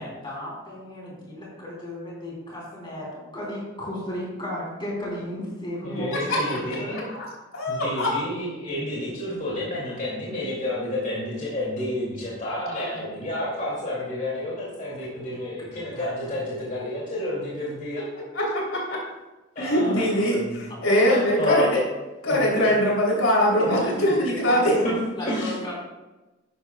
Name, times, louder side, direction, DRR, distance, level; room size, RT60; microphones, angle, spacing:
voice 1, 0.0-7.0 15.3-16.0 20.7-21.0 23.6-25.7, left 1 dB, 25° left, -5 dB, 3.3 m, -35 dB
voice 2, 5.8-7.0 7.7-18.0 19.5-20.6 20.9-21.6 22.3-22.5 23.8-23.9 24.8-24.9 25.2-25.5, left 1 dB, 40° left, -7 dB, 2.5 m, -30 dB
voice 3, 6.9-7.2 7.5-8.1 12.7-12.9 18.3-18.6 19.6-21.8 22.2-24.7, equal, 80° left, -4 dB, 3.3 m, -22 dB
12.5 x 10.0 x 2.3 m, 1.1 s
head